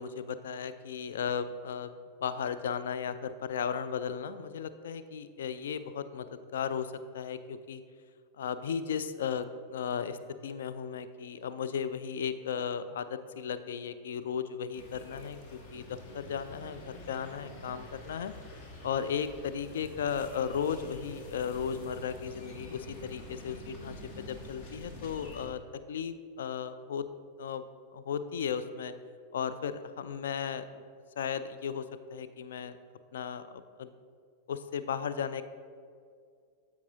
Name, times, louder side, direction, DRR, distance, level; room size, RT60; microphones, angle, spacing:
voice 1, 0.0-1.9 2.2-7.8 8.4-18.3 18.8-25.6 25.9-27.0 27.4-27.6 27.9-28.9 29.3-30.8 31.2-31.8 32.1-32.7 33.1-33.9 34.5-35.4, left 7 dB, 60° left, 12 dB, 0.4 m, -35 dB
sound 1, 14.7-25.5, left 1 dB, 45° left, 1.1 m, -47 dB
13.0 x 4.7 x 2.7 m, 2.2 s
figure-of-eight pair, 90°, 0 cm